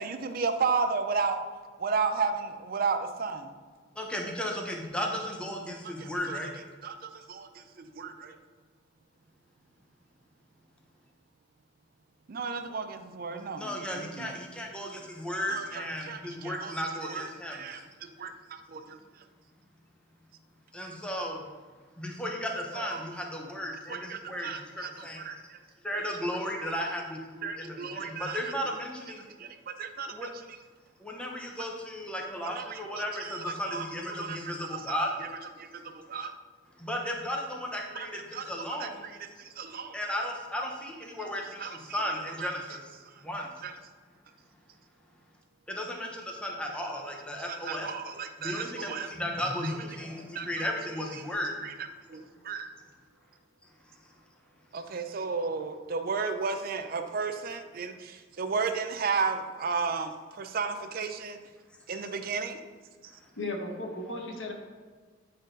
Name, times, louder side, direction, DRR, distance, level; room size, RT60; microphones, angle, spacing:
voice 1, 0.0-1.4 1.8-3.5 5.8-6.4 6.8-8.4 12.3-13.7 14.0-14.3 15.5-16.7 17.1-19.0 22.7-23.0 23.9-25.6 25.9-26.1 27.4-28.5 29.4-30.3 31.6-31.7 32.4-34.9 35.2-35.3 35.6-36.3 38.0-40.0 41.6-42.0 42.4-42.5 43.6-43.7 47.5-49.1 49.6-49.8 50.3-50.5 51.6-52.7 54.7-61.4 61.9-62.6, right 5 dB, 50° right, 8 dB, 0.5 m, -34 dB
voice 2, 4.0-6.5 13.6-17.8 20.7-21.4 22.0-25.4 25.8-29.2 30.1-30.3 31.0-35.1 36.8-39.1 39.9-42.9 43.2-43.6 45.7-47.9 48.4-51.6, equal, 5° left, 0 dB, 0.9 m, -35 dB
voice 3, 63.4-64.5, left 2 dB, 85° left, 2 dB, 1.2 m, -35 dB
8.5 x 4.0 x 3.9 m, 1.5 s
head